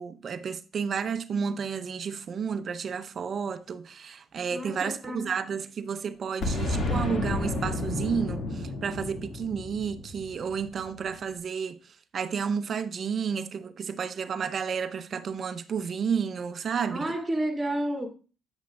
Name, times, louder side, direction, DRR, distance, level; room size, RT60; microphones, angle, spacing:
voice 1, 0.0-11.8 12.1-17.1, right 6 dB, 50° right, 0.6 m, -31 dB
voice 2, 4.5-5.3 16.9-18.1, right 1 dB, 20° right, 2.2 m, -30 dB
Boom, 6.4-11.1, left 2 dB, 65° left, 2.0 m, -31 dB
8.7 x 8.2 x 2.3 m
cardioid pair, 90°, 0 cm